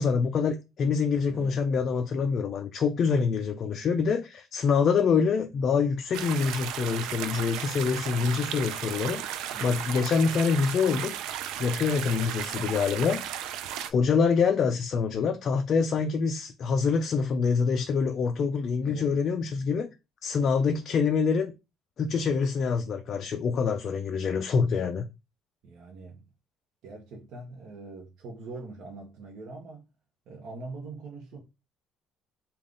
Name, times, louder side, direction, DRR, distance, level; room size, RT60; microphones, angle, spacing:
voice 1, 0.0-9.3 9.6-11.1 11.6-13.2 13.9-19.9 20.2-21.5 22.0-25.1, left 5 dB, 35° left, 0.3 m, -25 dB
voice 2, 1.3-2.2 9.5-9.8 18.8-19.2 25.6-26.2 26.8-29.9 30.3-31.4, right 3 dB, 55° right, 0.8 m, -43 dB
sound 1, 6.1-13.9, right 10 dB, 75° right, 0.4 m, -35 dB
3.5 x 2.3 x 3.7 m
cardioid pair, 170°, 0 cm